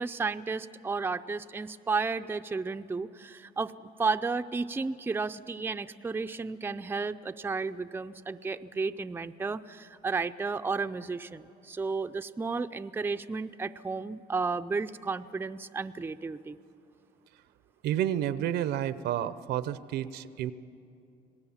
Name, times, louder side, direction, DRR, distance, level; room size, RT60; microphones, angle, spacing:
voice 1, 0.0-3.7 4.0-16.6, right 4 dB, 15° right, 9 dB, 0.5 m, -33 dB
voice 2, 17.8-20.5, right 11 dB, 80° right, 14 dB, 0.8 m, -30 dB
27.0 x 19.0 x 7.2 m, 2.6 s
cardioid pair, 110°, 17 cm